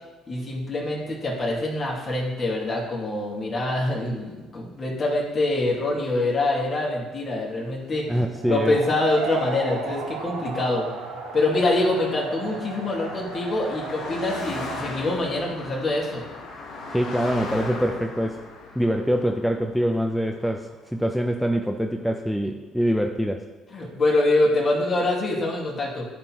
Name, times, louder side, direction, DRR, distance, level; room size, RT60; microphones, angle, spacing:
voice 1, 0.3-8.1 8.5-10.9 11.3-16.2 23.7-26.1, left 2 dB, 40° left, -3 dB, 2.4 m, -25 dB
voice 2, 8.1-8.8 16.9-18.4 18.8-23.4, equal, ahead, 4 dB, 0.6 m, -24 dB
sound 1, 8.3-14.8, right 4 dB, 85° right, 1.1 m, -35 dB
Car passing by, 9.9-21.3, left 3 dB, 65° left, 1.1 m, -39 dB
12.0 x 4.3 x 2.9 m, 1.2 s
hypercardioid pair, 60°, 0 cm